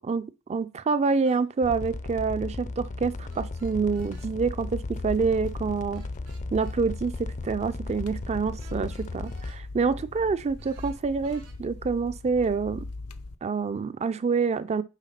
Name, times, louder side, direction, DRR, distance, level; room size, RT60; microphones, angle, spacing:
voice 1, 0.0-6.0 6.5-7.1 7.4-12.9 13.4-14.8, right 5 dB, 30° right, 0.4 m, -27 dB
sound 1, 1.2-1.4 3.3-4.3 5.9-6.8 8.6-9.6 10.6-11.6, right 5 dB, 80° right, 2.6 m, -55 dB
sound 2, 1.6-9.5, left 3 dB, 35° left, 0.4 m, -36 dB
sound 3, 3.9-13.4, left 2 dB, 80° left, 0.7 m, -41 dB
9.1 x 3.5 x 5.7 m
head